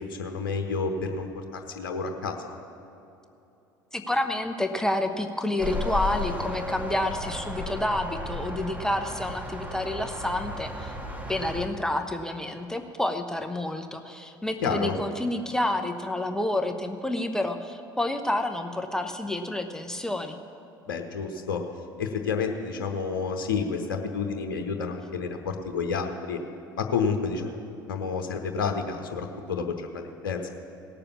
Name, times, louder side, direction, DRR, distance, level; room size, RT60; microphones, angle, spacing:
voice 1, 0.1-2.6 14.6-14.9 20.9-21.6 22.0-25.4 25.6-26.4 26.8-27.6 27.9-30.5, left 5 dB, 70° left, 5 dB, 1.0 m, -30 dB
voice 2, 3.9-11.0 11.3-20.4, left 1 dB, 5° left, 5 dB, 0.9 m, -29 dB
sound 1, 5.6-11.7, left 1 dB, 15° right, 1.7 m, -34 dB
18.0 x 6.8 x 7.1 m, 2.8 s
figure-of-eight pair, 65°, 11 cm